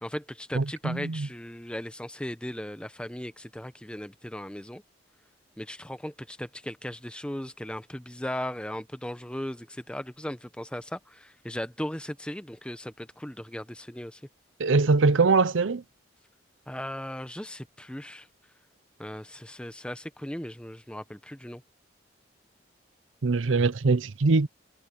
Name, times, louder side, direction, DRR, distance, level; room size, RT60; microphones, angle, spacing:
voice 1, 0.0-4.8 5.6-14.2 16.7-18.3 19.0-21.6, left 1 dB, 5° left, 0.8 m, -37 dB
voice 2, 0.5-1.3 14.6-15.8 23.2-24.5, right 3 dB, 85° right, 0.7 m, -22 dB
head